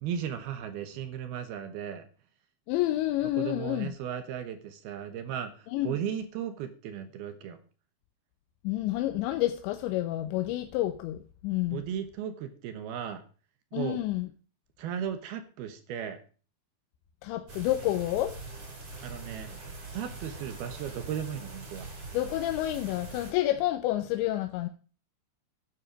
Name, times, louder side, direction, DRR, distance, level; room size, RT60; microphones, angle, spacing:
voice 1, 0.0-2.1 3.3-7.6 11.7-13.2 13.7-14.0 14.8-16.2 19.0-19.6 19.9-21.9, right 9 dB, 70° right, 2.7 m, -36 dB
voice 2, 2.7-3.9 5.7-5.9 8.6-11.8 13.7-14.3 17.2-18.3 22.1-24.7, left 15 dB, 85° left, 3.1 m, -29 dB
sound 1, 17.5-23.3, right 3 dB, 35° right, 4.4 m, -43 dB
9.9 x 9.7 x 5.1 m
omnidirectional pair, 5.1 m